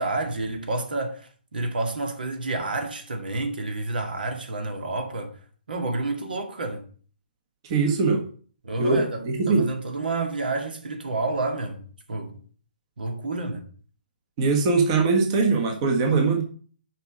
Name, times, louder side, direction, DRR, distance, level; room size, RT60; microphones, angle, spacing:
voice 1, 0.0-5.3 5.7-6.8 8.6-11.8 12.1-12.4 13.0-13.7, right 2 dB, 65° right, 1.9 m, -29 dB
voice 2, 7.6-8.2 8.8-9.7 14.4-16.4, right 4 dB, 35° right, 1.5 m, -21 dB
6.6 x 5.0 x 6.1 m
figure-of-eight pair, 135°, 5 cm